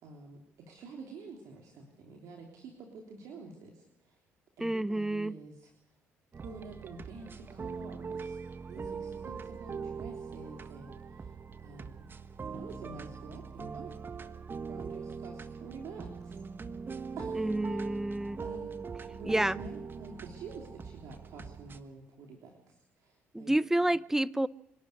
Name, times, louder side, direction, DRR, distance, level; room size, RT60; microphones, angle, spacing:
voice 1, 0.0-4.2 4.6-5.7 6.4-8.4 8.7-11.3 11.6-12.0 12.4-13.9 14.6-16.4 17.2-17.9 18.4-18.8 19.1-23.5, right 4 dB, 70° right, 1 dB, 3.3 m, -48 dB
voice 2, 4.6-5.4 17.4-18.4 19.2-19.6 23.3-24.5, right 1 dB, 5° right, 20 dB, 0.7 m, -29 dB
sound 1, 6.3-21.8, right 5 dB, 40° right, 1.4 m, -42 dB
25.5 x 12.0 x 9.7 m, 0.87 s
hypercardioid pair, 55°, 6 cm